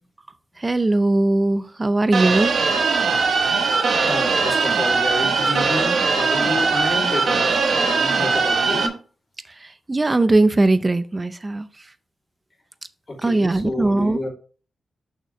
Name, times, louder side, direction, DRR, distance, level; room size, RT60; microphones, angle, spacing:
voice 1, 0.6-2.5 9.6-11.7 13.2-14.2, right 2 dB, 20° right, 12 dB, 0.6 m, -19 dB
sound 1, 2.1-8.9, right 4 dB, 60° right, 1.1 m, -20 dB
voice 2, 3.9-9.0 13.1-14.3, left 2 dB, 25° left, -3 dB, 3.2 m, -29 dB
6.6 x 6.0 x 3.2 m, 0.38 s
wide cardioid pair, 135°, 0 cm